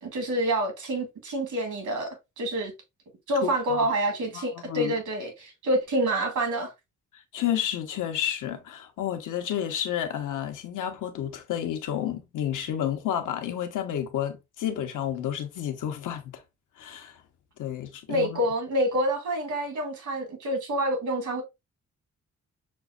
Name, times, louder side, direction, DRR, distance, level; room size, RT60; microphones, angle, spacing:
voice 1, 0.0-2.7 3.3-6.7 18.1-21.4, right 1 dB, 70° right, 1.5 m, -27 dB
voice 2, 3.4-3.9 4.3-5.0 7.3-16.4 16.8-17.2 17.6-18.4, left 10 dB, 80° left, 0.8 m, -31 dB
6.1 x 2.0 x 2.3 m
cardioid pair, 85°, 31 cm